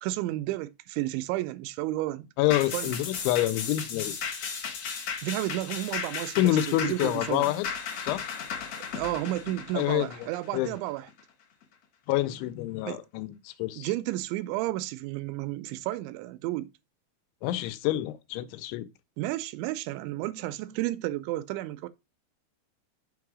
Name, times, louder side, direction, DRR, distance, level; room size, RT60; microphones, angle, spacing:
voice 1, 0.0-2.3 2.7-2.9 5.2-7.5 8.9-11.1 12.9-13.0 13.8-16.7 19.2-21.9, right 16 dB, 85° right, 2.9 m, -32 dB
voice 2, 2.4-4.2 6.4-7.7 8.0-8.2 9.7-10.8 12.1-13.9 17.4-18.9, left 14 dB, 90° left, 3.0 m, -27 dB
sound 1, 2.5-11.2 11.6-11.7, left 6 dB, 70° left, 1.6 m, -36 dB
6.7 x 4.7 x 4.8 m
omnidirectional pair, 5.2 m